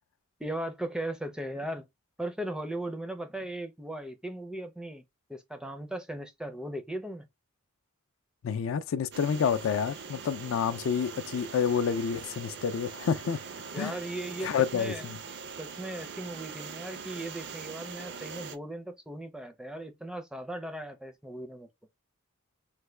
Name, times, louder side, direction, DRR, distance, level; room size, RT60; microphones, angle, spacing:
voice 1, 0.4-1.9 2.2-7.3 13.7-15.0 15.6-21.7, right 1 dB, 5° right, 0.4 m, -37 dB
voice 2, 8.4-13.4 13.7-14.0 14.4-15.2, left 7 dB, 65° left, 0.3 m, -29 dB
sound 1, 9.1-18.6, right 6 dB, 55° right, 0.5 m, -42 dB
3.3 x 2.1 x 3.1 m
head